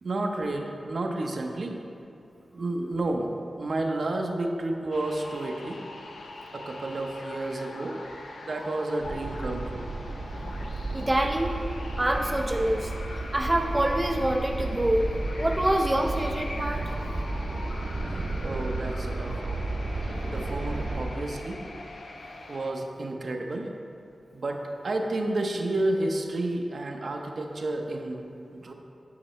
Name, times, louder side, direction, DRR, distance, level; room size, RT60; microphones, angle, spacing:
voice 1, 0.0-1.8 2.5-5.8 6.5-8.0 8.4-9.9 18.0-19.6 20.3-21.8 22.5-23.7 24.3-28.7, right 2 dB, 65° right, 2 dB, 0.7 m, -31 dB
sound 1, 4.9-22.7, left 2 dB, 85° left, 0.6 m, -43 dB
sound 2, 9.0-21.0, right 2 dB, 80° right, 1.3 m, -33 dB
voice 2, 10.9-11.5 12.0-12.9 13.3-16.9, right 1 dB, 15° right, 2 dB, 0.4 m, -26 dB
8.7 x 5.7 x 4.2 m, 2.6 s
wide cardioid pair, 90°, 0 cm